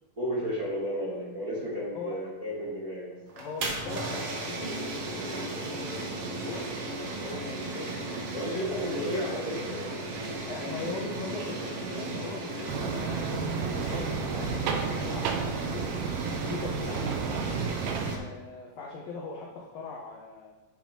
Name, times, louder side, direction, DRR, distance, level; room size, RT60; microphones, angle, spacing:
voice 1, 0.2-3.2 8.3-10.0 12.8-12.9, equal, 35° right, -8 dB, 1.6 m, -33 dB
voice 2, 3.3-6.7 7.0-8.2 10.5-15.9 16.1-17.7 18.1-20.5, left 3 dB, 85° left, -1 dB, 1.4 m, -41 dB
sound 1, 3.3-18.2, right 2 dB, 70° right, 1.4 m, -35 dB
sound 2, 12.7-18.2, right 5 dB, 90° right, 2.6 m, -32 dB
8.8 x 6.0 x 4.3 m, 1.2 s
omnidirectional pair, 4.3 m